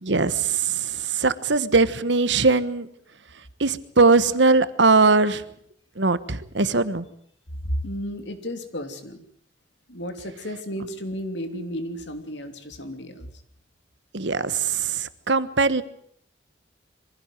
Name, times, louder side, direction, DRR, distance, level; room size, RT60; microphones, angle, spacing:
voice 1, 0.0-2.9 3.6-5.4 6.0-7.0 14.1-15.8, right 4 dB, 70° right, 14 dB, 1.3 m, -20 dB
voice 2, 7.6-9.2 9.9-13.3, equal, 70° left, 7 dB, 3.0 m, -33 dB
23.5 x 16.0 x 9.2 m, 0.65 s
head